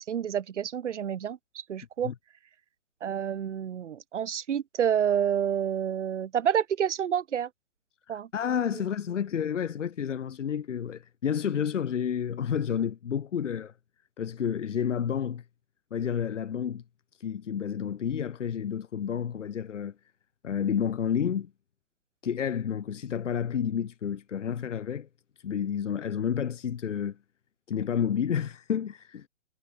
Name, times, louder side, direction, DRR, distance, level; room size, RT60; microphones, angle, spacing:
voice 1, 0.0-2.1 3.0-7.5 8.1-8.3 8.7-8.8, right 9 dB, 70° right, 0.9 m, -29 dB
voice 2, 8.1-13.7 14.2-15.4 15.9-16.8 17.2-19.9 20.4-21.5 22.2-25.1 25.4-27.2 27.7-29.3, left 8 dB, 75° left, 1.1 m, -30 dB
hypercardioid pair, 180°, 37 cm